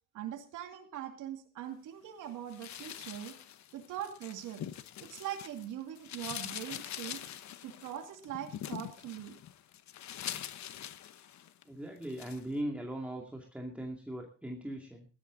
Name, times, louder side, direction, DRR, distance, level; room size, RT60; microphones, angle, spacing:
voice 1, 0.1-3.4 3.7-4.6 5.0-7.2 7.6-9.4, right 11 dB, 90° right, 3 dB, 2.4 m, -42 dB
sound 1, 2.5-5.7 5.9-11.6 12.0-12.4, left 11 dB, 65° left, 1.1 m, -44 dB
voice 2, 11.7-15.1, right 1 dB, 5° right, 1 dB, 2.5 m, -39 dB
16.5 x 12.5 x 4.0 m, 0.38 s
cardioid pair, 90°, 30 cm